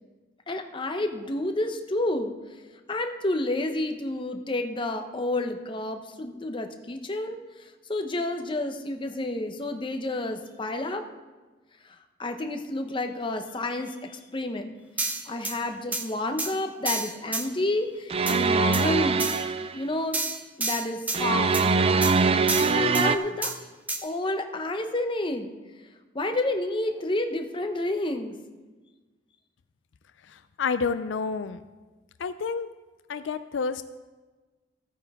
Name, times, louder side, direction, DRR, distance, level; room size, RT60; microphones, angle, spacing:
voice 1, 0.5-2.3 2.9-11.0 12.2-14.7 15.3-19.3 19.7-20.2 20.6-22.0 22.7-23.5 24.0-25.5 26.1-28.3, left 2 dB, 25° left, 6 dB, 0.8 m, -30 dB
sound 1, 15.0-15.6 15.9-16.0 16.4-16.5 16.9-17.4 18.3-18.4 18.7-18.8 19.2-19.4 20.1-21.2 21.5-21.7 22.0-22.1 22.5-23.1 23.4-23.5 23.9-24.0, right 3 dB, 10° right, 0.9 m, -29 dB
sound 2, 18.1-19.8 21.1-23.2, right 4 dB, 30° right, 0.4 m, -23 dB
voice 2, 30.6-31.6 32.2-32.7 33.1-33.8, left 5 dB, 75° left, 12 dB, 0.4 m, -29 dB
15.0 x 9.0 x 3.5 m, 1.3 s
head